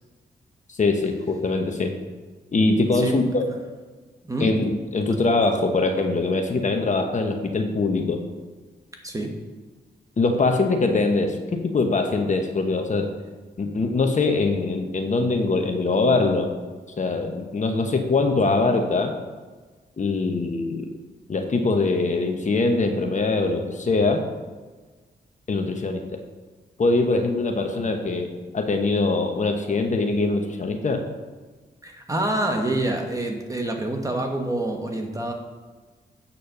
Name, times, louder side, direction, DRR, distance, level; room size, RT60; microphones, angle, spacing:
voice 1, 0.7-1.9 2.5-3.4 4.4-8.2 10.2-13.1 13.6-16.5 17.0-19.1 20.0-20.9 21.3-24.2 25.5-26.2 26.8-31.0, left 3 dB, 45° left, 4 dB, 1.0 m, -22 dB
voice 2, 2.9-3.3 4.2-4.5 5.1-5.2 9.0-9.3 31.8-35.3, right 1 dB, 20° right, 2 dB, 1.4 m, -27 dB
8.5 x 4.3 x 6.7 m, 1.4 s
cardioid pair, 85°, 18 cm